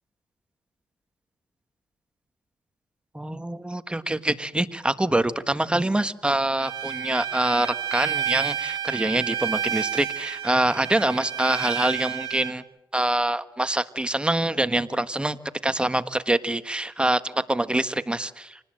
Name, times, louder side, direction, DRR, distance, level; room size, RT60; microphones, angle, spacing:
voice 1, 3.1-12.6 12.9-15.4 15.6-18.6, right 1 dB, 15° right, 11 dB, 1.4 m, -25 dB
Bowed string instrument, 6.6-12.5, right 9 dB, 75° right, 2.1 m, -30 dB
27.5 x 19.5 x 7.8 m, 0.91 s
cardioid pair, 70°, 8 cm